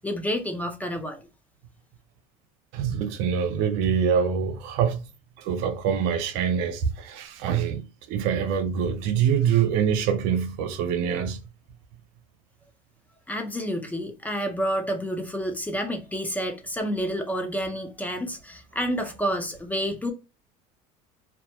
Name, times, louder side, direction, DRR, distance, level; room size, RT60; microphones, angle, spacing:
voice 1, 0.0-1.3 13.3-20.1, equal, 10° left, 0.4 m, -29 dB
voice 2, 2.7-5.0 5.4-11.4, right 7 dB, 75° right, 0.5 m, -25 dB
2.1 x 2.0 x 2.8 m
supercardioid pair, 105°, 18 cm